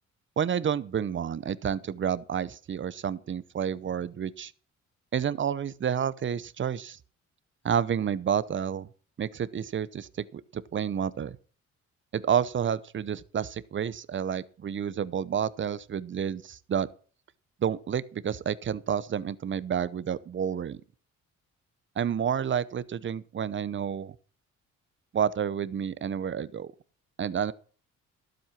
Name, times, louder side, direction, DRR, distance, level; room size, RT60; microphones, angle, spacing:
voice 1, 0.4-4.5 5.1-7.0 7.6-8.9 9.2-11.4 12.1-16.9 17.6-20.8 22.0-24.1 25.1-26.7 27.2-27.5, right 8 dB, 40° right, 0.8 m, -30 dB
12.0 x 7.9 x 5.9 m
cardioid pair, 90°, 30 cm